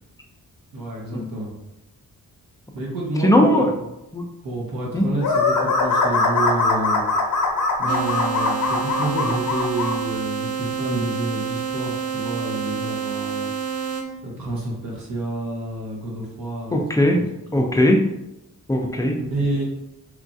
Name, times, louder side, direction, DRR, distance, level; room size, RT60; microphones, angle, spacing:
voice 1, 0.7-1.5 2.7-3.7 4.4-7.0 7.8-13.5 14.2-16.8 17.1-17.2 17.5-17.7 19.3-19.6, right 1 dB, 75° right, -4 dB, 0.9 m, -29 dB
voice 2, 3.2-3.7 4.1-4.2 4.9-5.1 16.7-17.2 17.5-18.0 18.7-19.2, left 1 dB, 10° left, 1 dB, 0.3 m, -18 dB
sound 1, 5.2-9.9, left 3 dB, 60° left, 0.6 m, -21 dB
sound 2, 7.9-14.0, right 6 dB, 45° right, 0.5 m, -28 dB
3.0 x 2.4 x 2.5 m, 0.89 s
wide cardioid pair, 105°, 35 cm